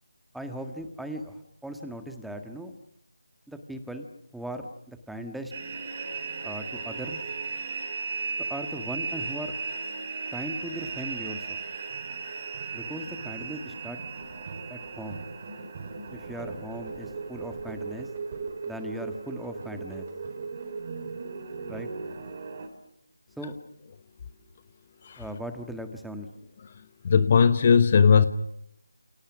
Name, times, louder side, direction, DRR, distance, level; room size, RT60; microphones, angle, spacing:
voice 1, 0.3-2.7 3.5-4.1 4.3-5.5 6.4-7.2 8.5-9.5 10.3-11.6 12.7-14.0 14.7-15.2 16.1-18.1 18.6-20.1 21.7-21.9 23.4-23.5 25.2-26.3, right 1 dB, ahead, 6 dB, 1.6 m, -38 dB
sound 1, 5.5-22.7, right 4 dB, 35° right, 4.9 m, -36 dB
voice 2, 27.0-28.3, left 6 dB, 35° left, 13 dB, 1.1 m, -18 dB
30.0 x 29.0 x 6.2 m, 0.74 s
figure-of-eight pair, 155°, 0 cm